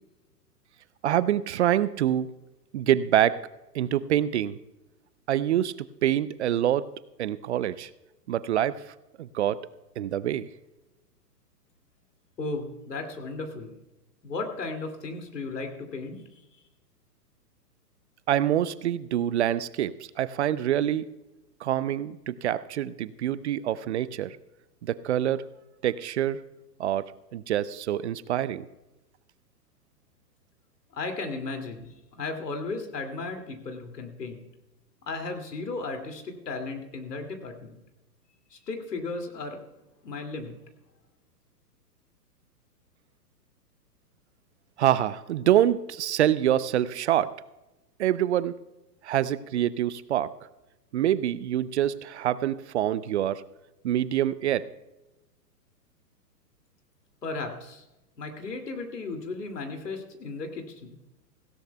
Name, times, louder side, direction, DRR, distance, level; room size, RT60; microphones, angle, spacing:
voice 1, 1.0-2.3 2.7-3.4 3.7-4.6 5.3-5.7 6.0-6.9 7.2-7.9 8.3-8.8 9.2-9.6 10.0-10.5 18.3-21.1 21.6-24.4 24.8-25.4 25.8-26.4 26.8-28.7 44.8-47.3 48.0-48.6 49.0-50.3 50.9-53.4 53.8-54.7, right 11 dB, 45° right, 17 dB, 0.5 m, -26 dB
voice 2, 12.4-13.7 14.2-16.4 30.9-34.4 35.1-37.8 38.5-39.6 40.0-40.6 57.2-57.8 58.2-61.0, left 3 dB, 75° left, 5 dB, 2.6 m, -35 dB
17.5 x 16.0 x 2.3 m, 0.99 s
hypercardioid pair, 120°, 48 cm